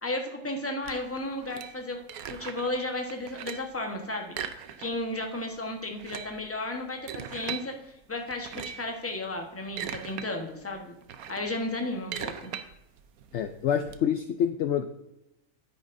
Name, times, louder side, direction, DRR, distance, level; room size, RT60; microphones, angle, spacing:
voice 1, 0.0-2.0 2.3-4.4 4.8-10.9 11.3-12.5, left 2 dB, 10° left, 2 dB, 1.0 m, -34 dB
sound 1, 0.8-2.8 3.1-3.8 4.3-5.2 5.4-5.5 5.9-7.7 8.3-8.9 9.4-10.3 10.6-14.0, right 8 dB, 85° right, 1.2 m, -39 dB
voice 2, 13.3-14.9, left 9 dB, 65° left, 9 dB, 0.7 m, -27 dB
9.5 x 9.4 x 2.6 m, 0.88 s
omnidirectional pair, 1.5 m